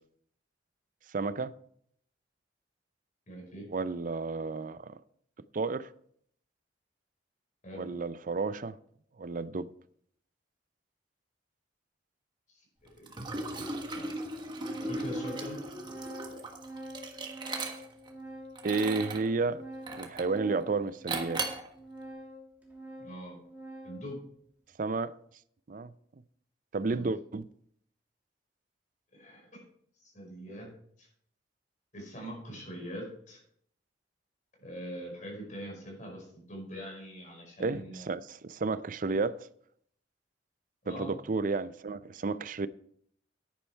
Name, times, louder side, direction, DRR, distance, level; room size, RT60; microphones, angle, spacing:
voice 1, 1.1-1.5 3.7-5.0 5.5-5.9 7.8-8.8 9.2-9.7 18.6-19.6 19.9-21.4 24.8-25.2 25.7-25.9 26.7-27.4 37.6-39.5 40.9-42.7, right 4 dB, 50° right, 0.5 m, -32 dB
voice 2, 3.3-3.7 7.6-7.9 12.5-12.6 13.0-13.1 13.9-14.1 14.8-15.6 23.0-23.4 23.8-24.2 26.9-27.0 29.1-29.6 30.0-30.7 31.0-31.1 31.9-33.4 34.6-38.1 40.8-41.2, equal, 45° left, 5.2 m, -42 dB
Organ, 12.9-13.0 13.8-13.9 14.2-24.1, right 1 dB, 10° right, 2.8 m, -46 dB
Liquid, 13.1-18.1 18.5-19.3 19.9-20.4 21.1-21.7, right 2 dB, 25° right, 1.4 m, -37 dB
10.5 x 10.0 x 4.5 m
head